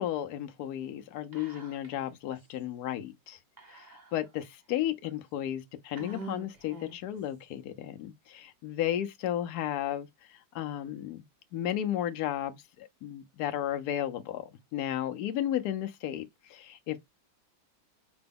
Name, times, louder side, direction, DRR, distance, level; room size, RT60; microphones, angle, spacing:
voice 1, 0.0-3.4 3.7-11.2 11.5-17.0, left 11 dB, 75° left, 0.9 m, -34 dB
Whispering, 1.3-2.0 2.3-2.4 3.6-4.4 5.0-5.1 5.9-7.1, equal, 30° right, 0.8 m, -45 dB
5.9 x 2.2 x 3.4 m
omnidirectional pair, 2.1 m